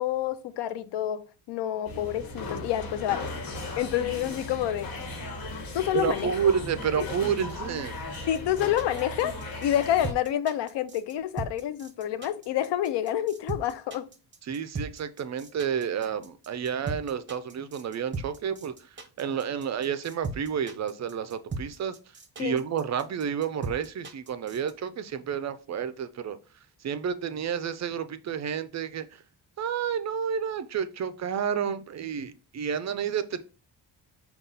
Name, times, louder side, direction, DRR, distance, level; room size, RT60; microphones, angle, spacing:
voice 1, 0.0-3.2 3.8-4.9 5.7-6.3 7.0-7.1 8.3-14.1 22.4-22.6, left 11 dB, 80° left, 0.5 m, -28 dB
sound 1, 1.8-10.1, left 2 dB, 60° left, 1.4 m, -37 dB
voice 2, 5.9-7.9 14.5-18.7 19.2-22.0 22.4-26.4 26.8-29.1 29.6-33.4, right 7 dB, 45° right, 0.4 m, -30 dB
sound 2, 8.0-24.7, right 3 dB, 25° right, 0.8 m, -37 dB
5.2 x 2.4 x 4.0 m
cardioid pair, 115°, 41 cm